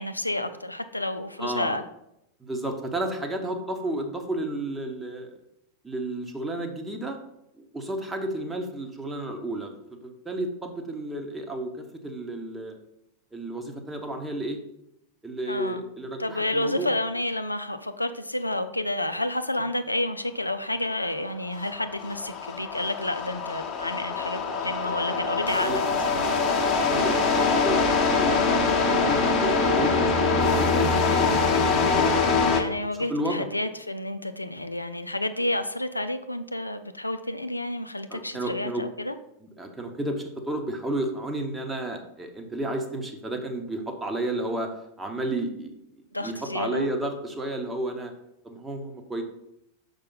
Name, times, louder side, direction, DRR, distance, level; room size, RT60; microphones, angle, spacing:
voice 1, 0.0-1.8 15.5-15.8 16.2-26.2 32.5-39.1 46.1-46.9, left 1 dB, 85° left, 9 dB, 0.4 m, -30 dB
voice 2, 1.4-1.8 2.4-5.3 5.8-7.2 7.5-12.8 13.3-14.6 15.2-16.9 25.3-26.4 26.7-32.3 32.9-33.5 38.1-38.9 39.4-44.7 45.0-48.1 48.4-49.2, right 1 dB, 10° right, 4 dB, 1.0 m, -32 dB
sound 1, 21.5-32.6, left 4 dB, 30° left, 0.9 m, -23 dB
6.6 x 5.2 x 3.9 m, 0.82 s
figure-of-eight pair, 90°, 0 cm